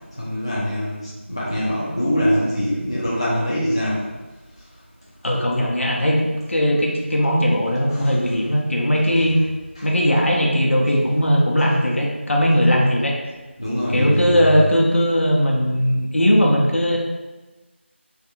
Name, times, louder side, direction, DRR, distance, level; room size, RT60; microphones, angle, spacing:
voice 1, 0.1-4.1 7.9-8.1 9.8-9.9 13.6-14.6, equal, 25° left, -9 dB, 0.4 m, -23 dB
voice 2, 5.2-9.4 9.8-13.2 13.9-17.0, equal, 70° left, -1 dB, 0.7 m, -19 dB
3.3 x 2.7 x 2.4 m, 1.2 s
figure-of-eight pair, 175°, 7 cm